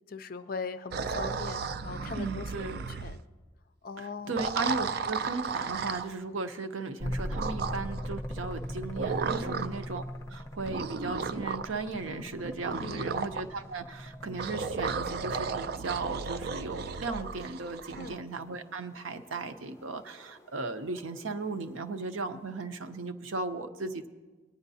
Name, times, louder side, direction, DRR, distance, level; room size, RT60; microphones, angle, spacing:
voice 1, 0.1-2.6 3.0-3.2 3.8-4.4 9.5-9.7 12.8-13.3 18.0-18.2, left 4 dB, 45° left, 10 dB, 0.4 m, -40 dB
sound 1, 0.9-3.2 4.3-6.1 7.3-8.0 9.0-9.9 10.7-11.8 12.4-13.4 14.4-18.2, right 5 dB, 50° right, 0.3 m, -34 dB
voice 2, 2.1-2.8 4.0-10.0 10.3-24.1, right 3 dB, 85° right, 8 dB, 0.7 m, -36 dB
sound 2, 7.0-15.6 17.8-22.3, equal, 15° left, 0.7 m, -41 dB
19.5 x 9.8 x 2.7 m, 1.3 s
head